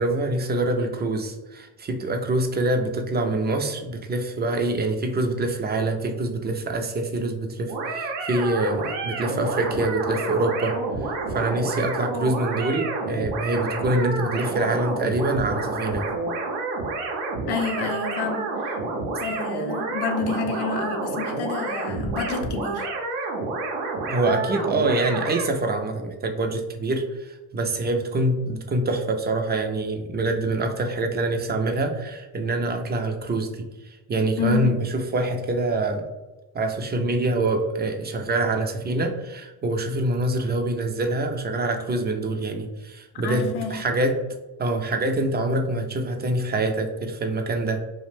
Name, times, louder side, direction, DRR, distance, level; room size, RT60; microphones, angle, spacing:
voice 1, 0.0-16.0 24.1-36.0 36.5-44.2 44.6-47.8, right 2 dB, 25° right, 4 dB, 0.3 m, -25 dB
sound 1, 7.7-25.5, right 3 dB, 90° right, 0.6 m, -29 dB
voice 2, 17.5-18.8 19.2-22.9 34.4-34.7 43.2-43.8, left 4 dB, 60° left, 4 dB, 0.6 m, -29 dB
2.5 x 2.0 x 3.2 m, 1.1 s
supercardioid pair, 65°, 46 cm